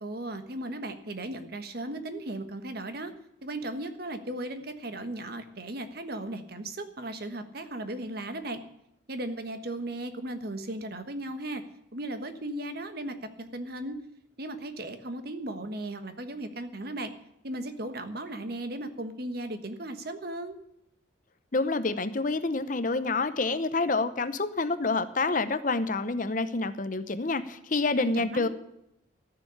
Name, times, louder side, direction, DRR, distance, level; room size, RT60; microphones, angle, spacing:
voice 1, 0.0-3.1 3.4-8.6 9.1-11.6 11.9-14.0 14.4-17.1 17.4-20.6 28.0-28.5, right 1 dB, 50° right, 8 dB, 1.4 m, -36 dB
voice 2, 21.5-28.5, left 3 dB, 40° left, 12 dB, 0.7 m, -28 dB
14.0 x 6.9 x 9.9 m, 0.79 s
head